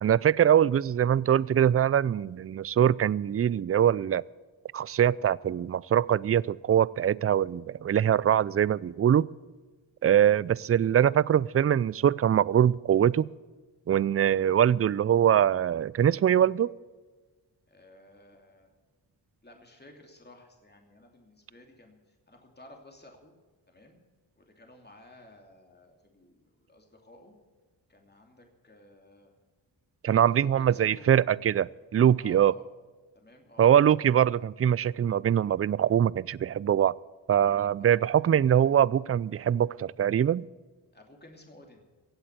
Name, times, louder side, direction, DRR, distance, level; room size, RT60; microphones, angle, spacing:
voice 1, 0.0-4.2 4.7-9.3 10.0-13.2 13.9-16.7 30.0-32.5 33.6-36.9 37.3-40.5, right 9 dB, 30° right, 23 dB, 0.4 m, -23 dB
voice 2, 17.7-18.7 19.4-23.3 23.7-24.0 24.4-27.3 27.9-29.3 30.1-31.2 32.2-32.7 33.1-33.7 37.8-38.1 38.5-38.8 40.9-41.9, left 1 dB, 20° left, 2 dB, 2.8 m, -54 dB
16.0 x 8.2 x 8.1 m, 1.3 s
cardioid pair, 40°, 47 cm